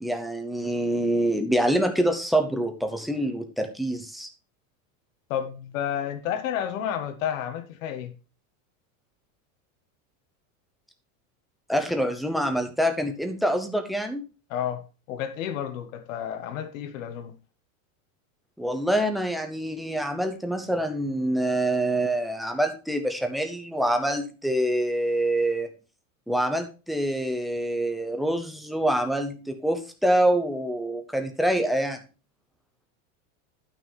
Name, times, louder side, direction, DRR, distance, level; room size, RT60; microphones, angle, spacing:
voice 1, 0.0-4.3 11.7-14.2 18.6-25.7 26.3-32.0, right 1 dB, ahead, 0.7 m, -26 dB
voice 2, 5.3-8.1 14.5-17.3, left 9 dB, 70° left, 1.6 m, -31 dB
11.5 x 6.1 x 3.4 m
supercardioid pair, 165°, 41 cm